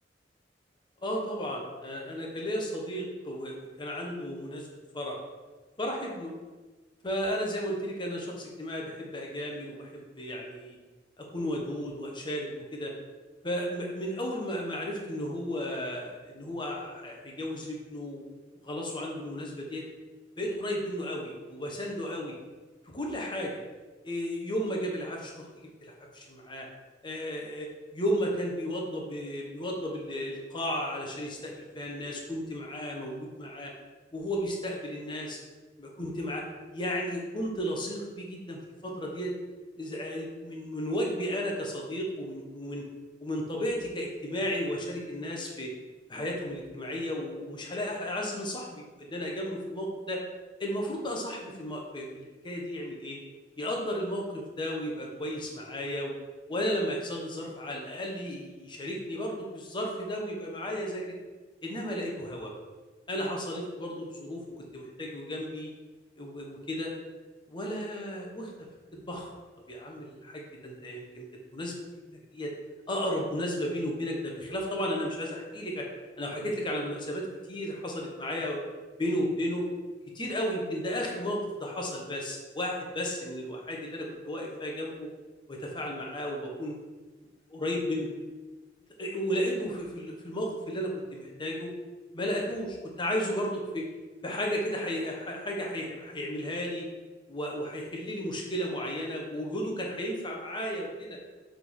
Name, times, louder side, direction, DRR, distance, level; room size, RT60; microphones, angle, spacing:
voice 1, 1.0-4.7 4.9-5.2 5.8-6.3 7.0-10.8 11.2-12.9 13.4-18.2 18.6-19.8 20.4-22.4 22.8-23.6 24.0-26.7 27.0-33.7 34.1-35.4 35.8-36.4 36.7-39.3 39.8-42.9 43.2-45.7 46.1-50.2 50.6-53.2 53.6-56.1 56.5-61.0 61.6-62.6 63.1-65.7 66.2-66.9 67.5-68.5 68.9-69.3 69.7-71.2 71.5-71.8 72.1-72.5 72.9-75.9 76.2-78.6 79.0-79.7 80.1-85.1 85.5-86.8 87.5-88.1 89.0-91.7 92.1-93.9 94.2-96.9 97.3-101.2, equal, 25° left, -1 dB, 1.3 m, -34 dB
7.8 x 3.9 x 4.9 m, 1.3 s
head